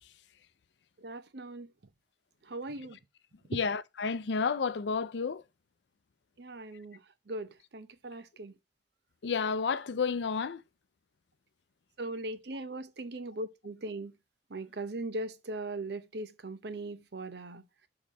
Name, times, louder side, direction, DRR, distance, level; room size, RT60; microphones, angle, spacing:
voice 1, 1.0-1.7 2.5-3.0 3.5-3.6 6.4-7.0 7.3-8.5 12.0-14.1 14.5-17.6, right 2 dB, 65° right, 0.8 m, -39 dB
voice 2, 3.5-5.4 9.2-10.6, left 5 dB, 80° left, 0.5 m, -31 dB
6.6 x 3.9 x 5.1 m
head